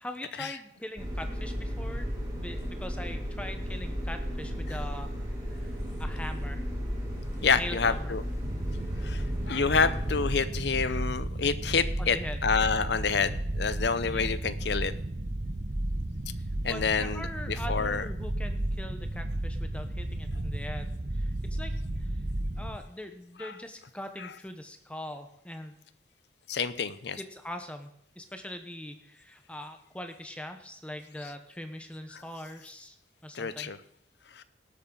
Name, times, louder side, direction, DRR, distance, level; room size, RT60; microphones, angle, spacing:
voice 1, 0.0-5.1 5.5-5.7 6.0-6.7 7.5-8.2 12.0-12.5 14.1-14.3 16.4-21.7 22.0-22.1 22.6-25.8 27.2-27.9 28.2-33.0 33.2-33.8, left 1 dB, 5° left, 7 dB, 1.0 m, -41 dB
sound 1, 1.0-10.3, equal, 15° right, 3.4 m, -34 dB
voice 2, 7.4-8.2 9.0-14.9 16.6-18.1 23.4-23.5 24.2-24.3 26.5-27.2 32.1-32.2 33.3-33.8 34.3-34.4, left 5 dB, 70° left, 14 dB, 0.7 m, -28 dB
sound 2, 8.4-22.8, right 1 dB, 45° right, 1.0 m, -33 dB
18.5 x 8.4 x 3.9 m, 0.73 s
head